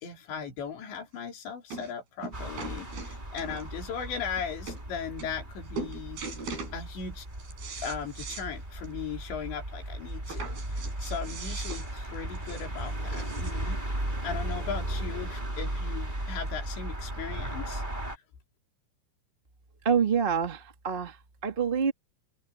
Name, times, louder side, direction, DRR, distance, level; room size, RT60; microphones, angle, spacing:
voice 1, 0.0-6.2 6.7-7.3 7.8-13.8 14.2-17.8, left 6 dB, 85° left, 6.0 m, -38 dB
sound 1, 1.0-1.1 1.7-1.9 2.2-3.8 4.4-4.5 4.7-4.8 5.2-5.5 5.8-6.8 7.2-8.5 8.8-8.9 9.3-9.4 10.2-13.7 14.5-14.6, right 4 dB, 60° right, 6.6 m, -40 dB
sound 2, 2.3-18.2, right 1 dB, 10° right, 4.2 m, -36 dB
voice 2, 19.8-21.1 21.4-21.9, right 7 dB, 35° right, 0.8 m, -26 dB
omnidirectional pair, 5.0 m